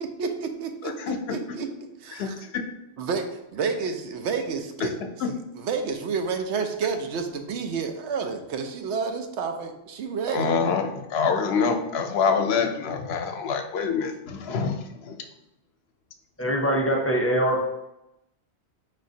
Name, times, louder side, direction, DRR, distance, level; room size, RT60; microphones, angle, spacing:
voice 1, 0.0-1.7 2.0-2.3 3.0-5.0 5.3-10.5, right 5 dB, 90° right, 5 dB, 0.9 m, -30 dB
voice 2, 0.8-1.2 1.5-1.6 2.1-2.5 4.8-4.9 5.2-5.3 10.3-15.2, left 5 dB, 70° left, 5 dB, 0.8 m, -26 dB
voice 3, 16.4-17.7, equal, 15° left, -1 dB, 0.6 m, -23 dB
4.9 x 3.8 x 2.7 m, 0.89 s
omnidirectional pair, 1.1 m